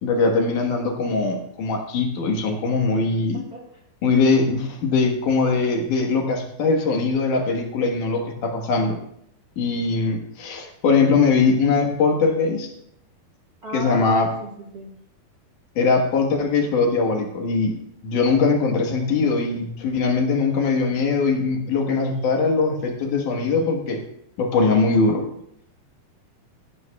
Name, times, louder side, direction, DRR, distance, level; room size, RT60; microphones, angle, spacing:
voice 1, 0.0-3.4 4.0-9.0 9.6-12.7 13.7-14.3 15.8-17.8 18.0-24.0 24.4-25.2, left 4 dB, 60° left, 2 dB, 2.7 m, -21 dB
voice 2, 13.6-15.0, right 2 dB, 70° right, -2 dB, 0.9 m, -35 dB
18.5 x 14.0 x 2.3 m, 0.72 s
omnidirectional pair, 4.5 m